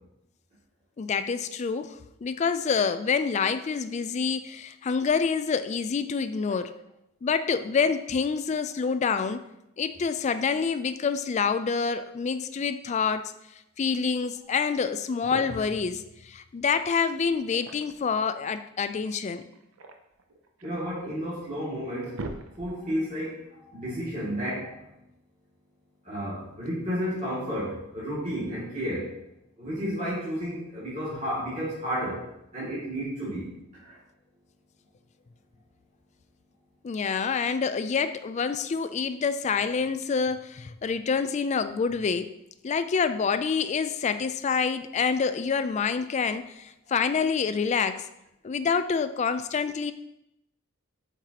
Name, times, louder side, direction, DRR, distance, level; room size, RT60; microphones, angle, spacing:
voice 1, 1.0-1.9 2.2-6.7 7.2-9.4 9.8-13.3 13.8-19.4 36.8-42.3 42.6-48.0 48.4-49.9, left 5 dB, 35° left, 11 dB, 0.3 m, -27 dB
sound 1, 14.7-14.8 15.1-15.9 17.3-18.1 19.4-20.8 21.4-21.5 21.8-23.0, right 2 dB, 80° right, 0.6 m, -41 dB
voice 2, 20.6-22.2 22.6-24.9 26.0-29.1 29.6-32.2 32.5-33.5 33.8-34.0, equal, 35° right, -10 dB, 2.4 m, -32 dB
7.7 x 4.6 x 2.9 m, 0.85 s
head